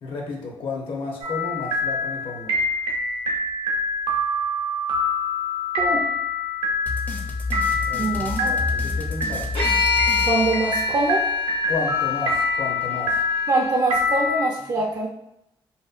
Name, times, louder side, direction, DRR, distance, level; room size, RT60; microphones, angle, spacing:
voice 1, 0.0-2.6 7.7-8.2 8.5-9.5 11.7-13.2, left 3 dB, 65° left, 0 dB, 0.7 m, -32 dB
sound 1, 1.2-14.4, left 2 dB, 85° right, 0.7 m, -25 dB
sound 2, 6.9-11.1, left 3 dB, 20° left, 0.4 m, -30 dB
voice 2, 8.0-8.6 10.3-11.2 13.5-15.1, right 2 dB, 45° right, -1 dB, 0.4 m, -23 dB
sound 3, 9.5-13.7, left 6 dB, 85° left, 1.0 m, -27 dB
2.7 x 2.1 x 2.4 m, 0.85 s
cardioid pair, 85°, 10 cm